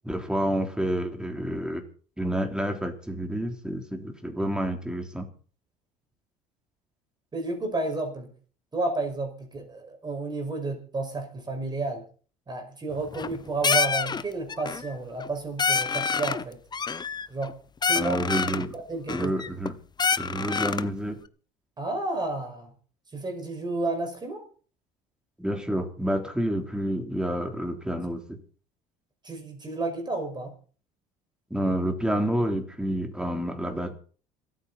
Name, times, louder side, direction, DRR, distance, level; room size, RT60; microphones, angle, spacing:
voice 1, 0.0-1.8 2.2-5.3 18.0-18.7 19.1-19.7 20.2-21.2 25.4-28.4 31.5-33.9, right 1 dB, 5° right, 4 dB, 3.5 m, -29 dB
voice 2, 7.3-8.3 8.7-12.0 12.5-16.6 17.3-17.5 17.9-18.2 18.7-19.3 21.8-22.7 23.1-24.4 29.2-30.5, right 2 dB, 25° right, 4 dB, 5.7 m, -31 dB
sound 1, 13.0-13.4 13.6-14.2 14.5-14.9 15.2-15.3 15.6-16.4 16.7-17.5 17.8-18.7 19.1-19.7 20.0-20.9, left 5 dB, 25° left, 0.9 m, -27 dB
27.0 x 9.3 x 4.3 m, 0.41 s
supercardioid pair, 85°, 17 cm